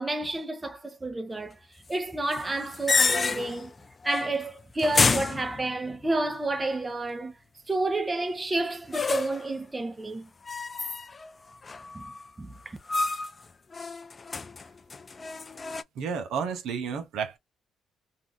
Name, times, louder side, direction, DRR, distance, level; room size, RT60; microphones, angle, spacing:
voice 1, 0.0-1.6 1.9-3.7 4.0-7.3 7.7-10.3 11.9-12.1 12.4-12.8, right 2 dB, 20° right, 0.7 m, -30 dB
sound 1, 2.3-3.7 4.0-4.4 4.8-6.1 8.9-9.5 10.4-11.3 11.6-12.3 12.9-13.4 13.7-15.8, left 4 dB, 30° left, 0.3 m, -29 dB
voice 2, 16.0-17.4, right 6 dB, 80° right, 0.7 m, -31 dB
2.6 x 2.3 x 3.3 m
cardioid pair, 90°, 0 cm